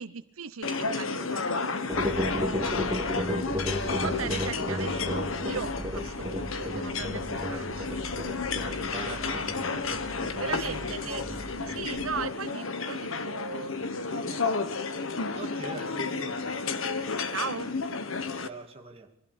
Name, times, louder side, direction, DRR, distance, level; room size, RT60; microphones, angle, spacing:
voice 1, 0.0-3.4 4.0-9.4 10.4-11.2 11.7-14.7 17.3-17.7, right 6 dB, 85° right, 0.9 m, -39 dB
sound 1, 0.6-18.5, left 4 dB, 75° left, 1.5 m, -32 dB
sound 2, 1.9-12.3, equal, 15° right, 1.8 m, -34 dB
sound 3, 3.7-7.7, left 3 dB, 55° left, 2.7 m, -53 dB
voice 2, 3.9-4.4 8.9-11.5 15.3-16.7 18.4-19.1, right 3 dB, 30° right, 2.6 m, -44 dB
24.0 x 15.5 x 8.5 m
head